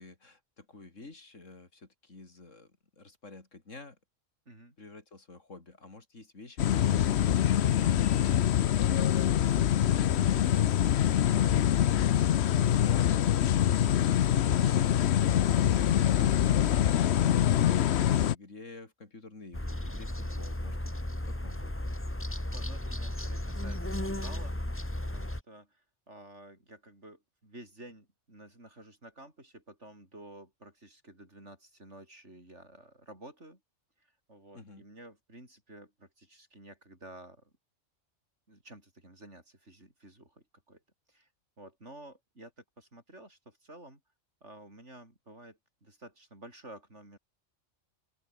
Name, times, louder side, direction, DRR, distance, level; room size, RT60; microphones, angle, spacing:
voice 1, 0.0-4.0 4.8-9.5 11.3-20.9 21.3-21.8 34.5-34.8, left 3 dB, 80° left, 3.9 m, -50 dB
voice 2, 4.5-4.8 20.1-20.4 22.5-33.6 34.3-37.5 38.5-40.8 41.1-41.3 41.6-44.0 44.4-47.2, right 1 dB, 65° right, 8.2 m, -52 dB
sound 1, 6.6-18.3, left 10 dB, 65° left, 0.9 m, -25 dB
sound 2, 19.5-25.4, left 1 dB, 10° left, 1.7 m, -35 dB
open air
omnidirectional pair, 1.3 m